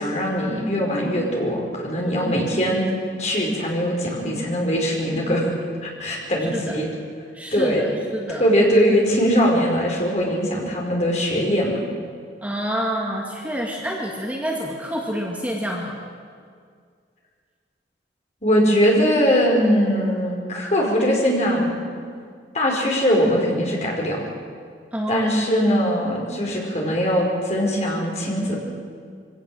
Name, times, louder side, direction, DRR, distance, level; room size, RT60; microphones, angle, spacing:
voice 1, 0.0-2.9 3.2-5.5 5.8-6.9 7.5-7.8 8.3-11.8 18.4-21.8 22.5-24.2 25.1-28.6, equal, 35° left, -1 dB, 4.9 m, -21 dB
voice 2, 7.3-8.4 12.4-16.0 24.9-25.3, equal, 10° right, -2 dB, 2.0 m, -28 dB
23.5 x 17.0 x 7.7 m, 2.1 s
head